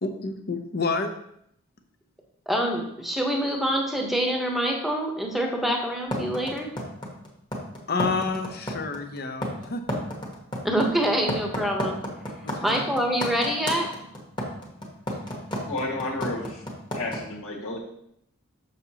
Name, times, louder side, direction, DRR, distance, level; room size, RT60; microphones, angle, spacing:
voice 1, 0.0-1.1 7.9-10.0 12.4-12.8, left 3 dB, 45° left, 6 dB, 0.7 m, -29 dB
voice 2, 2.5-6.7 10.6-12.0 12.6-13.9, equal, ahead, 1 dB, 1.0 m, -25 dB
sound 1, 6.1-17.2, equal, 20° left, 1.3 m, -30 dB
voice 3, 15.7-16.6 16.9-17.8, left 2 dB, 80° left, -3 dB, 1.8 m, -31 dB
6.8 x 6.5 x 2.9 m, 0.74 s
head